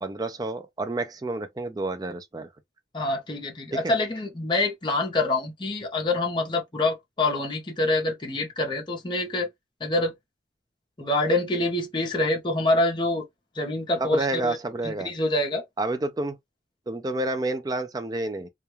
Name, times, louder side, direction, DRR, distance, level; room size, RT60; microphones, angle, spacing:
voice 1, 0.0-2.5 3.7-3.9 14.0-15.1 15.8-16.4 16.9-18.5, right 2 dB, 20° right, 0.3 m, -29 dB
voice 2, 2.9-9.5 9.8-10.1 11.0-13.2 13.6-14.6 14.8-15.6, left 2 dB, 25° left, 0.6 m, -26 dB
2.3 x 2.2 x 3.0 m
head